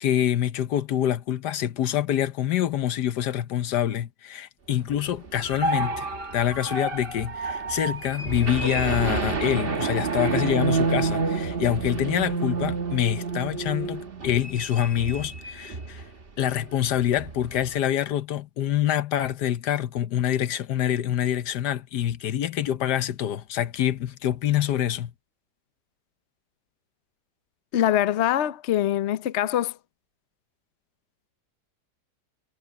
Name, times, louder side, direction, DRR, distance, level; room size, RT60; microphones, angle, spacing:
voice 1, 0.0-6.1 6.3-16.0 16.4-25.1, left 11 dB, 80° left, 1.4 m, -26 dB
sound 1, 5.1-16.1 16.4-16.6 16.9-17.7, right 4 dB, 35° right, 1.5 m, -29 dB
voice 2, 27.7-29.8, left 12 dB, 55° left, 0.8 m, -23 dB
omnidirectional pair, 1.8 m